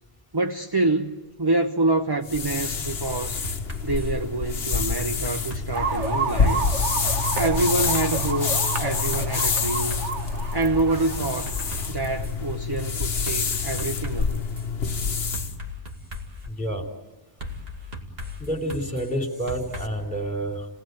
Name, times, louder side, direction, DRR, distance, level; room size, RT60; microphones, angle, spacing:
voice 1, 0.3-3.4 3.8-6.6 7.4-10.1 10.5-11.5 11.9-14.4, right 2 dB, 25° right, 0.9 m, -26 dB
sound 1, 2.2-15.5, left 5 dB, 65° left, 1.4 m, -27 dB
sound 2, 3.4-4.1 5.0-6.4 7.1-8.2 9.1-10.4 10.9-12.4 13.3-14.7 15.3-16.5 17.4-19.9, left 2 dB, 60° right, 2.8 m, -37 dB
sound 3, 5.7-12.1, right 4 dB, 85° right, 1.8 m, -31 dB
voice 2, 16.5-16.9 18.4-20.7, right 1 dB, 5° left, 3.5 m, -29 dB
30.0 x 19.0 x 9.5 m
omnidirectional pair, 1.2 m